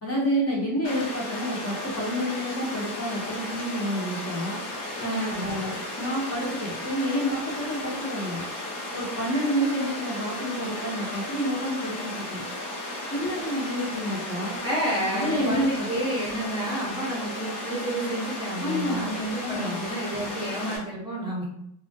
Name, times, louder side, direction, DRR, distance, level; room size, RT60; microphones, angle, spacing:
voice 1, 0.0-4.6 5.0-8.5 8.9-12.4 13.1-14.6 15.1-15.9 18.6-19.1 19.4-19.8, equal, 30° left, -3 dB, 0.8 m, -29 dB
Water, 0.8-20.8, left 1 dB, 70° left, 1.0 m, -35 dB
voice 2, 5.0-5.6 14.6-21.4, right 1 dB, 10° right, -6 dB, 0.7 m, -30 dB
2.3 x 2.0 x 2.7 m, 0.75 s
cardioid pair, 90°, 48 cm